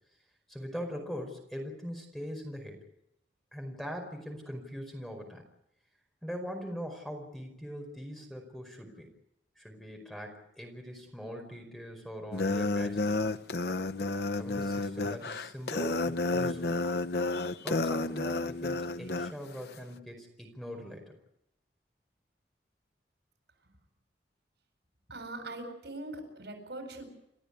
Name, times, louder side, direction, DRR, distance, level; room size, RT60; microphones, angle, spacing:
voice 1, 0.5-2.8 3.5-5.4 6.2-9.1 9.6-13.3 14.0-14.1 14.3-16.7 17.6-21.1, equal, ahead, 3 dB, 5.0 m, -41 dB
sound 1, 12.3-19.3, left 2 dB, 65° left, 0.8 m, -31 dB
voice 2, 25.1-27.1, right 2 dB, 75° right, 5 dB, 7.5 m, -41 dB
29.5 x 14.0 x 8.4 m, 0.81 s
head